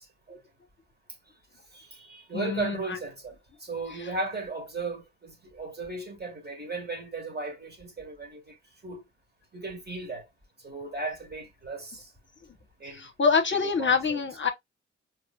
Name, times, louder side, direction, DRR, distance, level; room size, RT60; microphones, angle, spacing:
voice 1, 1.7-3.3 3.6-8.5 8.8-9.0 9.5-10.3 10.6-12.1 12.8-13.0 13.5-14.2, right 3 dB, 30° right, 1.8 m, -36 dB
voice 2, 2.3-3.0 12.9-14.5, left 5 dB, 40° left, 0.9 m, -26 dB
4.8 x 3.3 x 2.3 m
hypercardioid pair, 40°, 31 cm